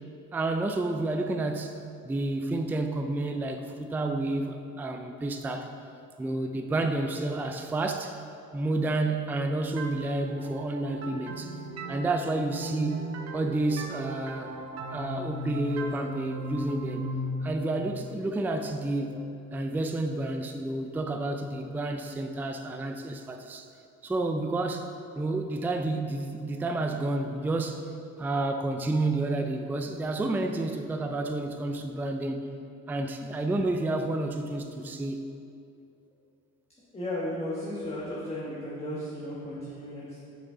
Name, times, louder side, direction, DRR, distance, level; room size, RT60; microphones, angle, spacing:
voice 1, 0.3-1.8 2.0-5.7 6.2-8.2 8.5-11.5 11.9-14.5 14.9-17.1 17.4-19.2 19.5-23.7 24.0-24.9 25.2-27.8 28.2-32.5 32.9-35.2, right 2 dB, 5° right, 6 dB, 0.3 m, -30 dB
sound 1, 9.8-19.3, right 1 dB, 60° right, 0.7 m, -37 dB
voice 2, 36.9-40.2, left 1 dB, 20° left, -7 dB, 1.2 m, -35 dB
6.1 x 5.2 x 3.7 m, 2.6 s
cardioid pair, 90°, 30 cm